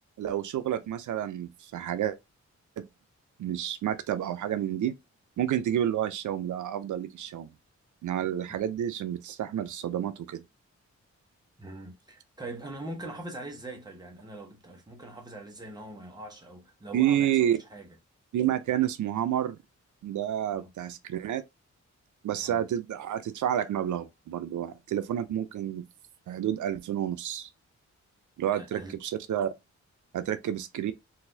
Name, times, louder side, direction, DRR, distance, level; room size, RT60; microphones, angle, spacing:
voice 1, 0.2-2.2 2.8-2.9 3.4-5.0 5.4-7.5 8.0-10.4 16.9-17.6 18.3-19.6 20.0-21.4 22.2-25.8 26.3-27.5 28.4-29.5 30.1-30.9, right 11 dB, 90° right, 0.5 m, -29 dB
voice 2, 11.6-17.9 20.5-20.7 22.4-22.6 28.5-29.0, right 1 dB, 15° right, 0.9 m, -42 dB
4.0 x 2.5 x 2.6 m
wide cardioid pair, 155°, 29 cm